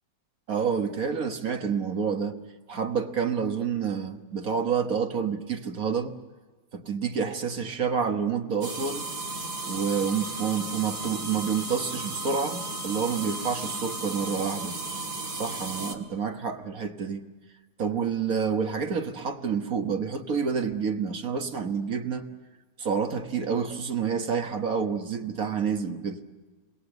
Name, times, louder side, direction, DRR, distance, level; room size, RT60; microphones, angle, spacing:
voice 1, 0.5-2.4 2.7-6.1 6.7-9.1 9.6-14.8 15.3-17.2 17.8-22.3 22.8-26.2, right 6 dB, 60° right, 1.8 m, -28 dB
sound 1, 8.6-15.9, right 2 dB, 80° right, 3.2 m, -34 dB
29.0 x 21.5 x 8.1 m
omnidirectional pair, 1.7 m